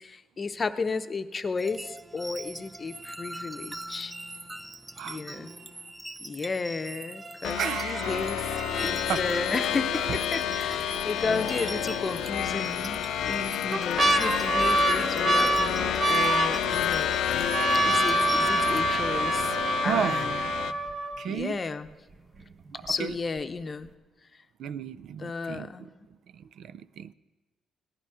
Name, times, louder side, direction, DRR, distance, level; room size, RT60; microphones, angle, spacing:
voice 1, 0.0-4.1 5.0-5.5 6.2-8.5 8.8-17.2 17.8-20.4 21.2-21.9 22.8-23.9 25.2-26.1, left 4 dB, 35° left, 0.7 m, -33 dB
sound 1, 1.6-18.8, right 2 dB, 15° right, 0.7 m, -41 dB
sound 2, 7.4-20.7, left 10 dB, 85° left, 0.6 m, -29 dB
voice 2, 7.5-9.3 19.8-20.3 21.2-21.6 22.7-23.2 24.6-25.9 26.3-27.1, right 8 dB, 70° right, 0.4 m, -34 dB
sound 3, 10.5-11.0 11.5-11.6 12.5-13.0 13.5-21.4 22.1-22.2 22.4-22.9 23.4-23.5, right 2 dB, 40° right, 1.0 m, -26 dB
17.5 x 11.0 x 4.9 m
cardioid pair, 90°, 0 cm